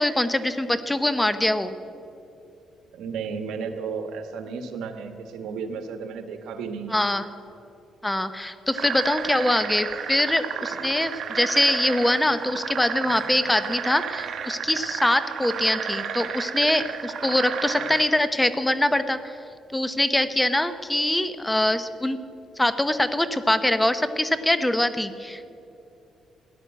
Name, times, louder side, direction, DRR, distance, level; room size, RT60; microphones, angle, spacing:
voice 1, 0.0-1.8 6.9-7.3 8.0-19.4 19.7-22.2 22.6-25.5, left 1 dB, 10° left, 12 dB, 0.8 m, -23 dB
voice 2, 2.9-7.0 10.8-11.0, right 5 dB, 85° right, 7 dB, 1.4 m, -33 dB
sound 1, 8.7-18.1, right 7 dB, 65° right, 1.3 m, -32 dB
15.0 x 10.5 x 8.0 m, 2.7 s
cardioid pair, 90°, 0 cm